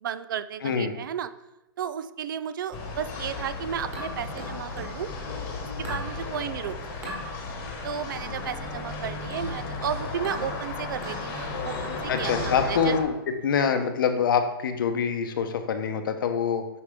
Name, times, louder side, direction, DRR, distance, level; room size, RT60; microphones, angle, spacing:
voice 1, 0.0-1.3 1.8-5.1 5.8-6.8 7.8-13.0 13.6-13.9, right 9 dB, 55° right, 15 dB, 0.4 m, -33 dB
voice 2, 0.6-0.9 12.1-16.7, left 6 dB, 60° left, 7 dB, 0.9 m, -25 dB
sound 1, 2.7-13.0, left 3 dB, 25° left, 1.2 m, -34 dB
sound 2, 3.9-5.0 5.8-6.1 7.0-7.2 8.2-8.4 9.3-9.6 10.2-10.5 11.0-11.3 12.2-12.5, right 1 dB, 20° right, 1.7 m, -39 dB
8.4 x 5.6 x 3.6 m, 0.94 s
hypercardioid pair, 170°, 13 cm